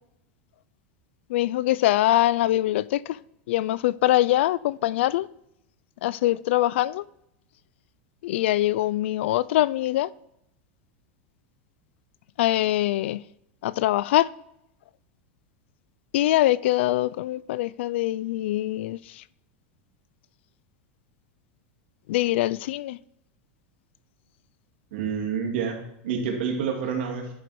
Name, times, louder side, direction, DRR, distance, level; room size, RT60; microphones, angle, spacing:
voice 1, 1.3-3.2 3.5-5.3 6.0-7.0 8.2-10.1 12.4-13.2 13.6-14.3 16.1-19.2 22.1-23.0, left 15 dB, 75° left, 0.3 m, -23 dB
voice 2, 24.9-27.3, right 6 dB, 70° right, 2.3 m, -28 dB
11.0 x 4.9 x 4.2 m
supercardioid pair, 150°, 6 cm